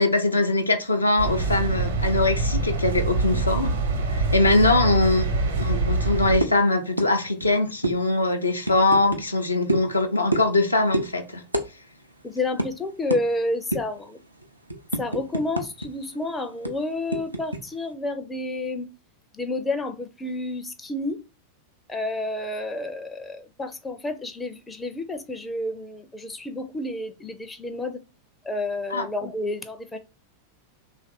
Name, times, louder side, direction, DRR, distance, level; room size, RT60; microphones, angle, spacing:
voice 1, 0.0-3.7 4.1-5.3 5.6-11.4 28.9-29.1, left 2 dB, 80° left, 0.5 m, -22 dB
sound 1, 1.2-6.4, right 3 dB, 65° right, 0.9 m, -25 dB
sound 2, 6.4-6.6 7.0-7.1 7.4-7.5 7.8-8.0 8.6-9.2 9.7-9.9 10.3-10.6 10.9-11.1 11.5-11.7 12.0-12.1 12.6-12.7 13.1-13.2 13.7-14.0 14.4-15.9 16.1-16.2 16.6-17.6, right 1 dB, 85° right, 0.5 m, -26 dB
voice 2, 12.2-14.2 15.0-18.9 19.3-21.2 21.9-28.0 28.4-30.0, left 2 dB, 10° left, 0.5 m, -30 dB
3.1 x 2.4 x 4.1 m
figure-of-eight pair, 90°, 0 cm